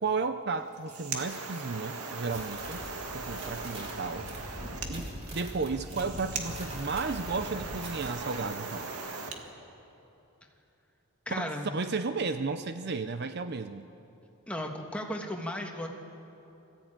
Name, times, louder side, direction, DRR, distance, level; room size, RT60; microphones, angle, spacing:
voice 1, 0.0-2.8 3.1-4.3 4.9-8.9 11.3-13.8, right 4 dB, 50° right, 10 dB, 0.6 m, -33 dB
sound 1, 0.6-9.4, right 4 dB, 90° right, 1.9 m, -39 dB
sound 2, 2.3-8.1, equal, 30° right, 3.4 m, -42 dB
voice 2, 11.2-11.7 14.5-15.9, left 1 dB, 5° left, 1 dB, 1.6 m, -35 dB
23.0 x 14.5 x 8.9 m, 3.0 s
head